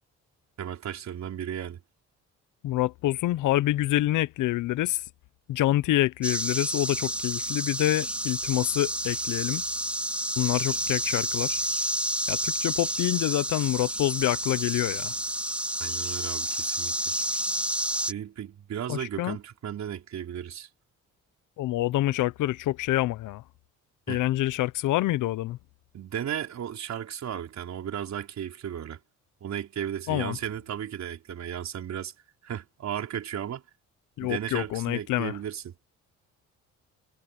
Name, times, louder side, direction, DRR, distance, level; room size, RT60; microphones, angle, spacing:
voice 1, 0.6-1.8 15.8-17.0 18.1-20.7 24.1-24.2 25.9-29.0 29.4-32.1 32.4-33.6 34.2-35.7, right 9 dB, 65° right, 4.5 m, -35 dB
voice 2, 2.6-5.0 5.5-9.6 10.4-11.6 12.3-15.1 18.9-19.4 21.6-23.4 24.1-25.6 30.1-30.4 34.2-35.4, left 15 dB, 85° left, 0.8 m, -27 dB
sound 1, 6.2-18.1, right 1 dB, 5° right, 3.2 m, -30 dB
cardioid pair, 90°, 30 cm